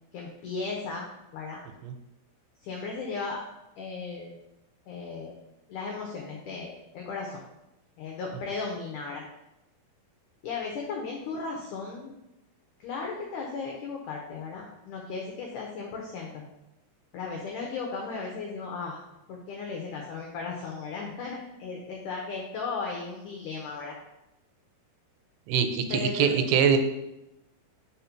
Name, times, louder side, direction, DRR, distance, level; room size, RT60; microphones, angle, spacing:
voice 1, 0.1-1.6 2.6-3.4 3.8-4.4 4.9-5.3 5.7-7.4 8.0-9.2 10.4-12.1 12.8-16.5 17.1-19.0 19.3-24.0 25.9-26.3, left 4 dB, 85° left, 0 dB, 1.8 m, -36 dB
voice 2, 25.5-26.8, right 7 dB, 90° right, 8 dB, 2.8 m, -23 dB
5.4 x 4.3 x 5.8 m, 0.92 s
omnidirectional pair, 4.7 m